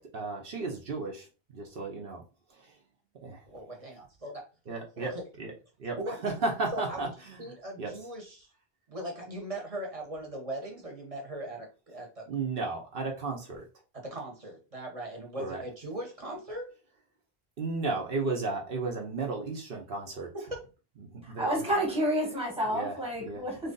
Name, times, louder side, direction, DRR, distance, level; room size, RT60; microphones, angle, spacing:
voice 1, 0.0-2.2 3.2-3.4 4.7-5.1 5.4-5.5 5.8-6.0 6.2-7.4 7.8-7.9 12.3-13.6 15.4-15.6 17.6-20.3 21.1-21.7 22.7-23.4, right 3 dB, 70° right, 0.9 m, -34 dB
voice 2, 3.5-4.4 5.0-5.2 6.0-6.3 6.7-7.1 7.4-8.5 8.9-12.3 13.9-16.7 20.3-20.7, right 1 dB, 35° right, 1.0 m, -39 dB
voice 3, 21.2-23.7, equal, 5° right, 1.1 m, -30 dB
2.9 x 2.6 x 3.8 m
omnidirectional pair, 1.0 m